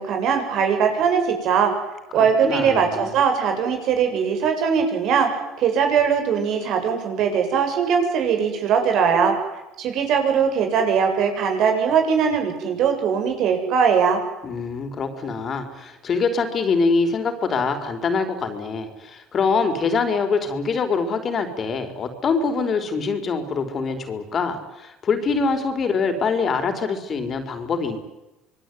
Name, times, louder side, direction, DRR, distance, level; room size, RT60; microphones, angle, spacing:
voice 1, 0.0-1.7 2.1-5.3 5.6-9.4 9.8-14.2, right 6 dB, 60° right, 5 dB, 7.9 m, -20 dB
voice 2, 2.4-3.1 14.4-28.0, left 4 dB, 40° left, 7 dB, 4.9 m, -24 dB
26.5 x 21.5 x 9.9 m, 0.97 s
supercardioid pair, 95°, 0 cm